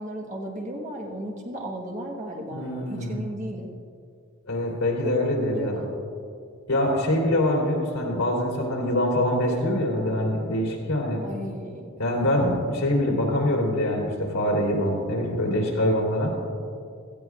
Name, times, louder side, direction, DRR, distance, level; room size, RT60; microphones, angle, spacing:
voice 1, 0.0-3.7 5.0-5.1 5.5-5.9 11.2-11.9, right 1 dB, 35° right, -1 dB, 1.3 m, -35 dB
voice 2, 2.5-3.2 4.5-5.8 6.7-11.2 12.0-16.3, left 1 dB, 85° left, -3 dB, 3.2 m, -24 dB
17.5 x 14.0 x 2.4 m, 2.3 s
head